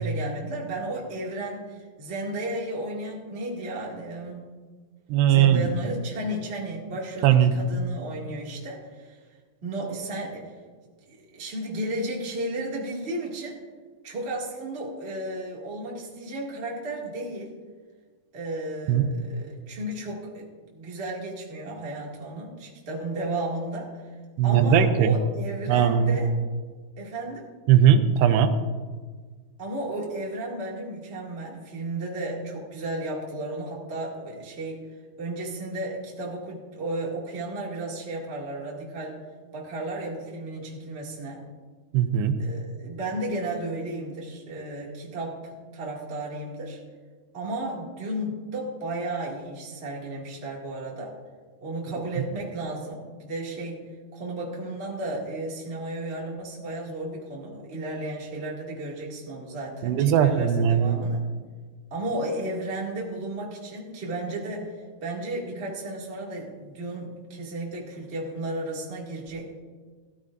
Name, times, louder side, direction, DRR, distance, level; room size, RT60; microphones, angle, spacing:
voice 1, 0.0-4.5 5.3-9.2 9.6-10.5 11.1-13.6 14.0-17.5 18.3-20.5 20.7-24.1 24.4-26.3 27.0-27.4 29.6-34.8 35.2-39.1 39.5-41.4 42.4-46.8 47.3-51.1 51.6-61.2 61.9-64.7 65.0-69.5, right 1 dB, 25° right, -4 dB, 1.4 m, -33 dB
voice 2, 5.1-5.7 7.2-7.5 18.9-19.1 24.4-25.2 25.7-26.2 27.7-28.5 41.9-42.3 59.8-61.0, right 9 dB, 90° right, 9 dB, 2.8 m, -19 dB
15.0 x 13.5 x 2.6 m, 1.5 s
omnidirectional pair, 4.7 m